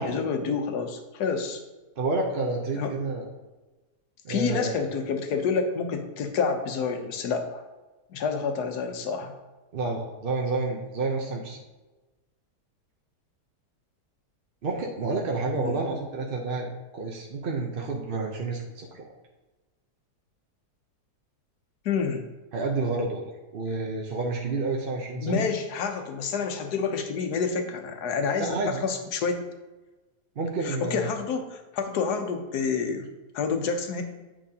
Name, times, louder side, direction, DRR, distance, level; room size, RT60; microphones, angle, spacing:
voice 1, 0.0-1.6 2.7-2.9 4.3-7.6 8.1-9.3 15.5-15.8 21.8-22.2 25.2-29.4 30.6-33.1 33.3-34.0, left 5 dB, 75° left, 5 dB, 1.4 m, -28 dB
voice 2, 2.0-3.3 4.2-4.8 9.7-11.6 14.6-19.1 22.5-25.5 28.4-28.8 30.4-31.1, right 3 dB, 50° right, 0 dB, 0.7 m, -29 dB
8.7 x 5.7 x 2.8 m, 1.2 s
omnidirectional pair, 1.7 m